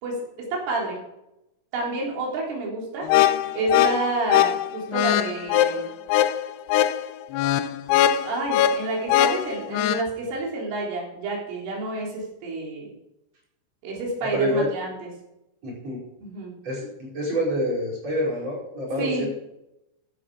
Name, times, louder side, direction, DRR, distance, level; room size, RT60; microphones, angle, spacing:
voice 1, 0.5-1.0 1.7-3.1 3.5-5.9 8.2-12.9 13.8-15.1 16.2-16.5 19.0-19.3, right 2 dB, 85° right, -2 dB, 6.2 m, -29 dB
sound 1, 3.0-10.0, left 11 dB, 90° left, 2.3 m, -21 dB
voice 2, 14.2-14.7 15.6-16.0 16.6-19.3, left 1 dB, 35° right, -4 dB, 6.0 m, -27 dB
15.5 x 11.0 x 4.9 m, 0.90 s
omnidirectional pair, 5.5 m